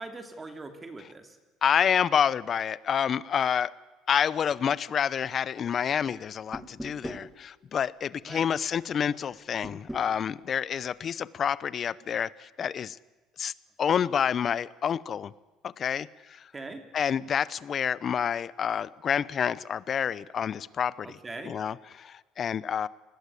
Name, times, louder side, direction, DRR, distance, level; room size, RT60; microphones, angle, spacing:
voice 1, 0.0-1.4 8.3-8.5 16.5-16.8 21.0-21.6, right 3 dB, 15° right, 7 dB, 2.8 m, -41 dB
voice 2, 1.6-3.7 4.1-13.0 13.4-13.5 13.8-15.3 15.8-16.1 16.9-21.2 21.4-22.9, left 8 dB, 35° left, 20 dB, 0.8 m, -28 dB
sound 1, 6.5-7.3 9.6-10.1, equal, ahead, 2.3 m, -39 dB
28.5 x 20.5 x 8.4 m, 1.3 s
cardioid pair, 140°, 0 cm